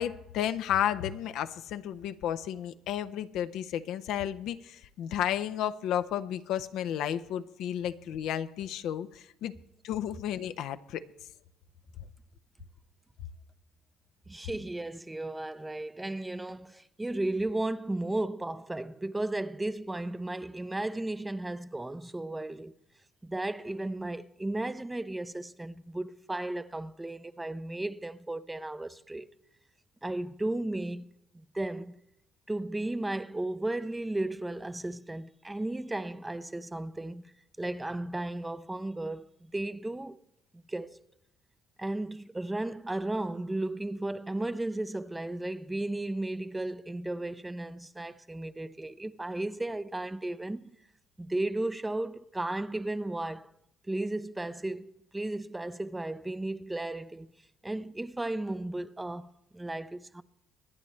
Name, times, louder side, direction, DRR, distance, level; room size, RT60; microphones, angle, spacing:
voice 1, 0.0-9.5 9.8-11.0, left 10 dB, 70° left, 0.6 m, -32 dB
voice 2, 14.3-22.7 23.2-29.3 30.0-31.1 31.3-32.0 32.5-37.2 37.6-40.2 40.7-41.0 41.8-50.7 51.2-53.5 53.9-57.3 57.6-60.2, right 2 dB, 10° right, 0.6 m, -34 dB
24.0 x 9.8 x 3.2 m
supercardioid pair, 80°, 0 cm